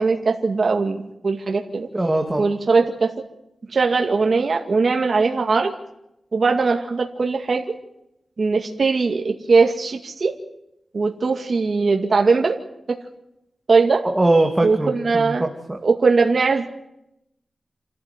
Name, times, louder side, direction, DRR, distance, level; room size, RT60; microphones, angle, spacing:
voice 1, 0.0-1.9 2.4-3.1 3.7-5.7 6.3-7.6 8.4-10.4 10.9-12.6 12.9-13.0 13.7-14.0 14.6-15.4 15.8-16.7, right 4 dB, 60° right, 3 dB, 2.2 m, -20 dB
voice 2, 1.9-2.5 14.0-15.8, right 2 dB, 15° right, 3 dB, 2.5 m, -21 dB
28.0 x 13.5 x 9.7 m, 0.82 s
wide cardioid pair, 90°, 0 cm